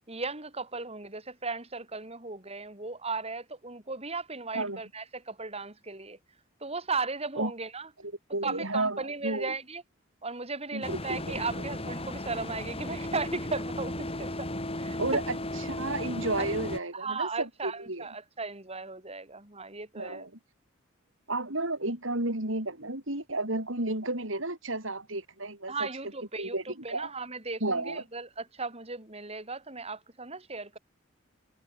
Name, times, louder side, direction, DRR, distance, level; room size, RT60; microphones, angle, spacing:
voice 1, 0.1-6.2 6.6-7.9 8.4-9.8 10.2-14.5 14.8-15.0 16.4-16.5 16.9-20.3 25.7-30.8, right 3 dB, 30° right, 7.1 m, -36 dB
voice 2, 8.0-9.5 10.7-11.3 15.0-15.4 15.7-18.1 20.0-20.3 21.3-25.9 26.4-27.1 27.6-28.0, right 2 dB, 70° right, 7.8 m, -32 dB
sound 1, 10.8-16.8, left 1 dB, 30° left, 7.6 m, -35 dB
head